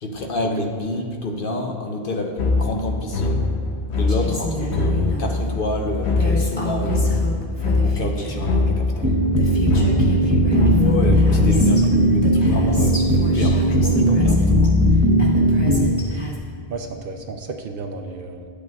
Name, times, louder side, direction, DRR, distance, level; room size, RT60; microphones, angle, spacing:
voice 1, 0.0-3.4 3.9-7.2 7.8-9.1 10.8-14.8, left 2 dB, 60° left, 2 dB, 0.9 m, -28 dB
sound 1, 2.4-11.8, left 3 dB, 80° left, 1.1 m, -23 dB
Female speech woman speaking, 4.1-5.3 6.2-8.5 9.1-9.2 9.4-11.9 12.2-14.7 15.2-16.4, right 1 dB, 25° left, 1.1 m, -31 dB
sound 2, 9.0-15.9, equal, 15° right, 0.8 m, -17 dB
voice 2, 16.7-18.5, right 3 dB, 60° right, 4 dB, 0.7 m, -32 dB
10.5 x 8.3 x 2.3 m, 2.1 s
omnidirectional pair, 1.1 m